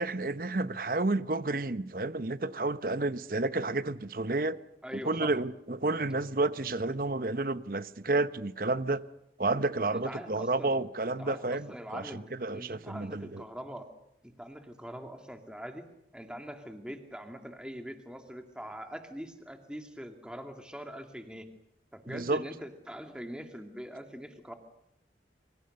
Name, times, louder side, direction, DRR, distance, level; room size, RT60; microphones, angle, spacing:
voice 1, 0.0-4.6 5.0-9.0 9.4-12.0 12.4-13.4 22.1-22.4, right 2 dB, 50° right, 0.9 m, -30 dB
voice 2, 4.8-5.3 6.9-7.1 9.9-13.9 14.2-15.8 16.1-21.5 21.9-24.5, equal, 5° right, 2.3 m, -43 dB
27.0 x 25.0 x 6.6 m
head